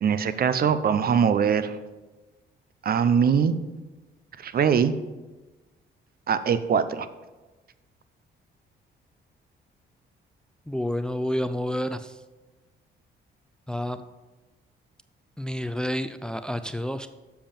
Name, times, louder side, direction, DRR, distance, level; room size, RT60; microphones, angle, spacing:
voice 1, 0.0-1.8 2.8-3.6 4.4-4.9 6.3-7.1, right 7 dB, 50° right, 13 dB, 0.6 m, -22 dB
voice 2, 10.7-12.2 13.7-14.0 15.4-17.1, equal, 5° left, 11 dB, 0.4 m, -29 dB
7.4 x 7.0 x 5.4 m, 1.2 s
cardioid pair, 90°, 20 cm